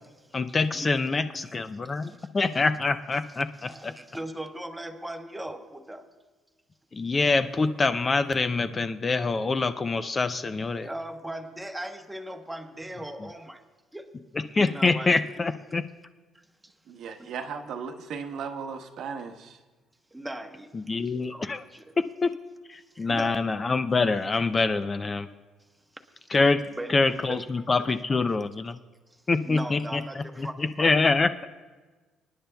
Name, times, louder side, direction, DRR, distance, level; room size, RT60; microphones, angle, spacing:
voice 1, 0.3-3.9 6.9-10.9 14.5-15.8 20.7-21.6 22.2-22.3 22.7-25.3 26.3-26.6 26.9-28.8 29.3-31.5, left 3 dB, 25° left, 10 dB, 0.4 m, -25 dB
voice 2, 1.9-2.3 3.6-6.2 10.8-13.6 13.9-14.2 14.6-15.5 16.6-16.7 17.2-17.3 20.1-21.4 21.7-22.0 22.9-23.4 26.8-27.0 27.3-27.4 27.8-27.9 29.1-31.0, right 1 dB, 5° right, 4 dB, 0.9 m, -39 dB
voice 3, 16.9-19.6, right 6 dB, 65° right, 5 dB, 1.0 m, -36 dB
26.0 x 10.5 x 2.3 m, 1.3 s
cardioid pair, 145°, 0 cm